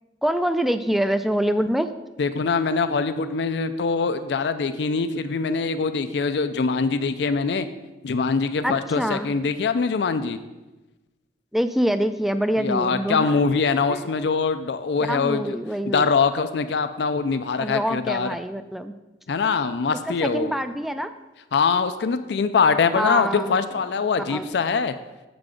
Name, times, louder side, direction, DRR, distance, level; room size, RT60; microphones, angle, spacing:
voice 1, 0.2-1.9 8.6-9.3 11.5-13.3 13.9-14.1 15.1-16.1 17.6-18.9 20.1-21.1 22.9-23.6 24.3-24.5, equal, ahead, 10 dB, 0.3 m, -25 dB
voice 2, 2.2-7.7 8.0-10.4 12.6-15.6 15.8-18.4 19.3-20.5 21.5-24.9, left 5 dB, 70° left, 10 dB, 0.4 m, -23 dB
7.5 x 6.1 x 5.0 m, 1.1 s
head